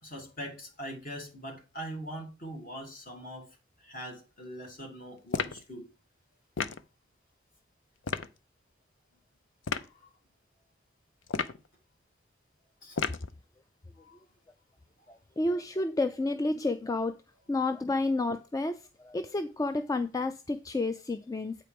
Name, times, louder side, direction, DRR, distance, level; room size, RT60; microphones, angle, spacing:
voice 1, 0.0-3.4 3.8-5.9 9.8-9.9 12.8-13.0 14.0-14.2, equal, 45° left, 2.7 m, -42 dB
sound 1, 5.3-5.6 6.6-6.8 8.0-8.3 9.6-9.9 11.3-11.7 13.0-13.3, left 5 dB, 90° left, 0.6 m, -32 dB
voice 2, 15.1-17.1 17.5-21.6, left 2 dB, 20° left, 0.3 m, -30 dB
8.5 x 4.5 x 5.1 m
head